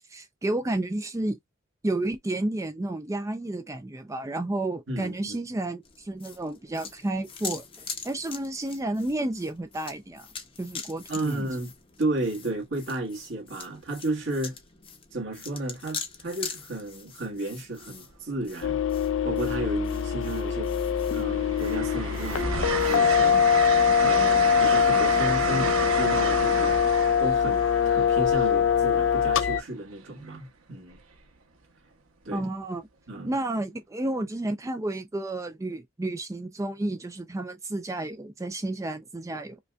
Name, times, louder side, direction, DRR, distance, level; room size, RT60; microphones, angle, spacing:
voice 1, 0.1-1.4 1.8-10.3 10.6-11.5 32.3-32.9 33.2-39.6, right 2 dB, 15° right, 0.4 m, -31 dB
voice 2, 4.9-5.4 11.1-11.7 12.0-14.5 15.1-18.8 19.2-20.7 21.1-23.4 24.0-26.7 27.2-31.0 32.2-32.5 33.1-33.3, right 2 dB, 65° right, 1.6 m, -33 dB
sound 1, 5.8-23.0, left 5 dB, 25° left, 0.7 m, -43 dB
Train, 17.8-18.1 19.4-20.2 20.6-29.3 30.9-31.2, right 4 dB, 90° right, 0.9 m, -32 dB
sound 2, 18.6-29.6, left 7 dB, 65° left, 0.4 m, -23 dB
5.1 x 2.3 x 2.3 m
head